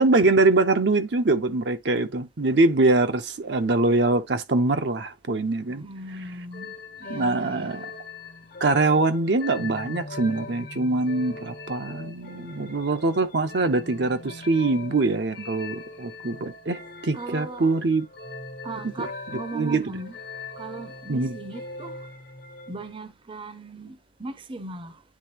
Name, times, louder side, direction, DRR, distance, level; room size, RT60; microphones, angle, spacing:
voice 1, 0.0-5.8 7.1-7.8 8.6-18.1 19.0-19.1 19.5-19.9 21.1-21.4, right 3 dB, 80° right, 0.8 m, -23 dB
voice 2, 5.7-7.9 17.1-17.8 18.6-20.2 20.6-22.0 22.7-25.0, right 2 dB, 30° right, 0.6 m, -38 dB
sound 1, 6.5-22.9, left 3 dB, 65° left, 0.9 m, -40 dB
9.8 x 3.4 x 2.9 m
head